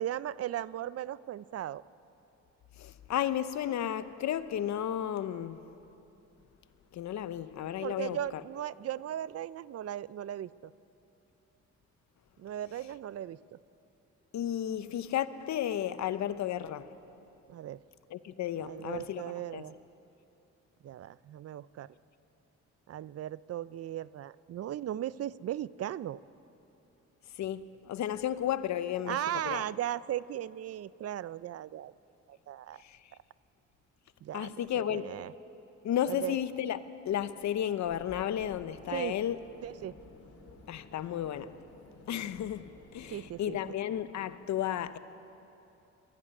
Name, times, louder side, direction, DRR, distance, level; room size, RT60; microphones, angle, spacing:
voice 1, 0.0-1.8 7.8-10.7 12.4-13.6 17.5-17.8 18.6-19.7 20.8-21.9 22.9-26.2 29.1-31.9 32.3-32.8 34.2-34.5 34.9-35.3 36.1-36.4 38.9-39.2 39.6-39.9 43.1-43.6, right 11 dB, 55° right, 0.5 m, -37 dB
voice 2, 2.8-5.6 6.9-8.2 14.3-16.9 18.1-19.7 27.4-29.2 29.4-29.6 32.8-33.0 34.3-35.1 35.8-36.8 37.0-39.4 40.7-41.5 42.1-45.0, left 10 dB, 65° left, 0.9 m, -33 dB
sound 1, 37.8-44.1, left 2 dB, 50° left, 3.5 m, -54 dB
22.0 x 13.5 x 9.8 m
cardioid pair, 90°, 30 cm